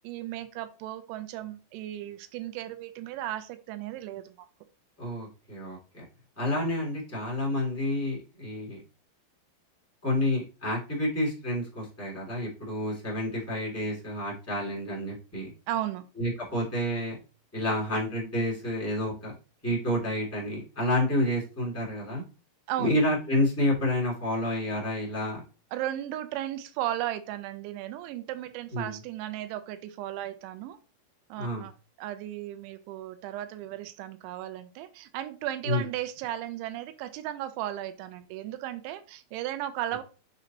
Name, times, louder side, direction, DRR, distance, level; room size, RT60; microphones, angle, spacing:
voice 1, 0.0-4.3 15.7-16.0 22.7-22.9 25.7-30.8 31.3-31.7 32.0-40.0, right 13 dB, 90° right, 10 dB, 3.0 m, -35 dB
voice 2, 5.0-6.0 6.4-8.8 10.0-15.5 16.2-17.2 17.5-19.3 19.6-22.2 22.8-25.4 28.7-29.0 31.4-31.6 35.6-35.8, left 1 dB, 10° left, -6 dB, 0.8 m, -29 dB
9.1 x 4.0 x 2.8 m, 0.33 s
omnidirectional pair, 5.3 m